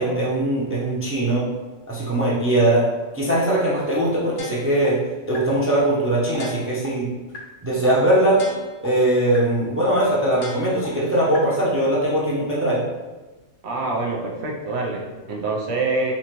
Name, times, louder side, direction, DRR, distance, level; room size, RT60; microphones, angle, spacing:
voice 1, 0.0-1.4 1.9-2.9 3.1-5.0 5.3-7.1 7.6-8.4 8.8-12.8, right 1 dB, 15° right, -6 dB, 0.5 m, -20 dB
sound 1, 4.4-4.9 5.3-5.4 5.8-5.9 6.3-6.9 7.3-7.4 7.8-7.9 8.3-8.9 9.3-9.4 9.8-9.9 10.3-10.9 11.3-11.4, left 4 dB, 75° left, 1.1 m, -36 dB
voice 2, 13.6-16.1, right 3 dB, 65° right, 0 dB, 0.9 m, -26 dB
4.2 x 2.7 x 3.0 m, 1.2 s
omnidirectional pair, 1.3 m